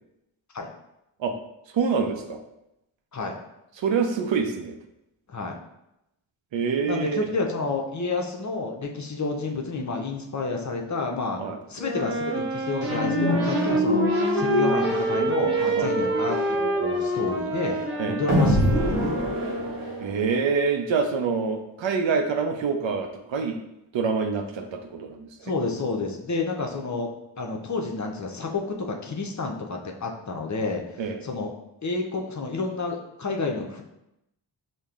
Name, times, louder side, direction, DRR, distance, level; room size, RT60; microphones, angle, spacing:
voice 1, 1.7-2.4 3.8-4.8 6.5-7.3 11.4-11.6 15.7-15.9 18.0-18.2 20.0-23.6 23.9-25.5 31.0-31.2, right 5 dB, 65° right, 5 dB, 0.6 m, -26 dB
voice 2, 6.9-11.4 11.7-14.1 14.3-17.8 18.1-19.1 25.4-27.1 27.4-30.8 31.2-31.5 31.8-33.8, left 3 dB, 35° left, 1 dB, 0.6 m, -30 dB
Wind instrument woodwind instrument, 11.8-20.1, right 1 dB, 25° right, 0.8 m, -28 dB
sound 1, 12.8-20.3, equal, 85° right, 0.9 m, -26 dB
5.2 x 2.2 x 2.4 m, 0.86 s
cardioid pair, 40°, 49 cm